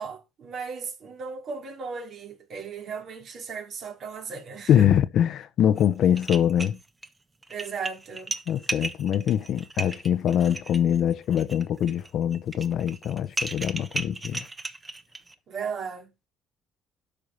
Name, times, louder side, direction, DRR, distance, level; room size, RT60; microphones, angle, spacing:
voice 1, 0.0-4.9 7.5-8.3 15.5-16.3, right 5 dB, 55° right, 3.6 m, -36 dB
voice 2, 4.7-6.8 8.5-14.4, left 10 dB, 65° left, 0.9 m, -23 dB
sound 1, 5.8-5.9 6.2-7.1 7.4-15.3, right 3 dB, 20° right, 1.3 m, -35 dB
12.0 x 4.9 x 5.6 m
supercardioid pair, 85°, 0 cm